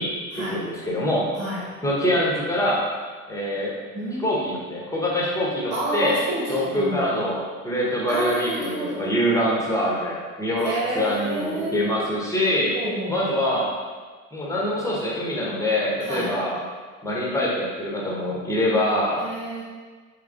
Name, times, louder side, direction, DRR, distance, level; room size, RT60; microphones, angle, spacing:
voice 1, 0.0-1.3 1.8-2.8 3.3-3.7 4.2-6.2 6.5-12.7 13.1-13.7 14.3-16.6 17.0-19.3, left 1 dB, 5° left, -4 dB, 0.7 m, -24 dB
voice 2, 1.4-1.7 3.9-4.5 5.7-7.3 8.1-9.0 10.6-12.0 12.7-13.3 16.0-16.3 19.2-19.6, right 1 dB, 25° right, -5 dB, 1.2 m, -29 dB
3.2 x 3.1 x 2.4 m, 1.4 s
figure-of-eight pair, 70°, 43 cm